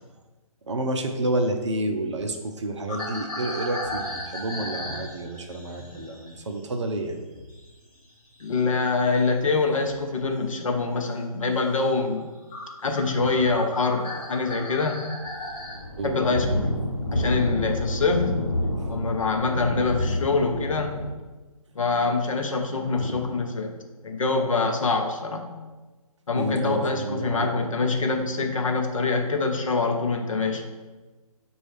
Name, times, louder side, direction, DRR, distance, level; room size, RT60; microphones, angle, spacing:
voice 1, 0.7-7.2 13.3-13.6 16.0-16.4 18.8-19.0 22.9-23.1 26.3-27.5, right 1 dB, 50° right, 4 dB, 0.5 m, -30 dB
sound 1, 2.9-7.7 7.9-10.1 10.6-11.0 11.4-11.6 12.2-12.3 12.5-15.8, left 1 dB, 10° left, 0.7 m, -37 dB
voice 2, 8.4-12.3 12.8-15.1 16.0-16.7 17.1-18.4 18.9-21.0 21.8-23.7 24.0-25.5 26.3-30.7, left 3 dB, 55° left, 3 dB, 0.6 m, -25 dB
sound 2, 15.1-21.1, left 1 dB, 30° left, 1.1 m, -29 dB
5.9 x 2.3 x 3.2 m, 1.2 s
figure-of-eight pair, 145°, 19 cm